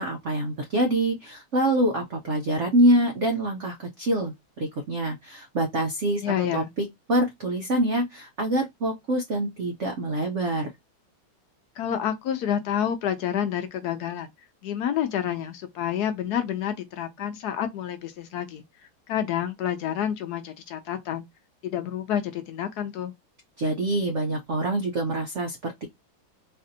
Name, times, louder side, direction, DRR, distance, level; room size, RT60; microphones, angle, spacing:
voice 1, 0.0-6.2 6.5-10.7 23.6-25.9, right 1 dB, 90° right, 0.6 m, -25 dB
voice 2, 6.2-6.7 11.8-14.3 14.6-18.6 19.1-21.3 21.6-23.1, left 9 dB, 70° left, 0.9 m, -29 dB
4.1 x 2.6 x 2.6 m
omnidirectional pair, 2.2 m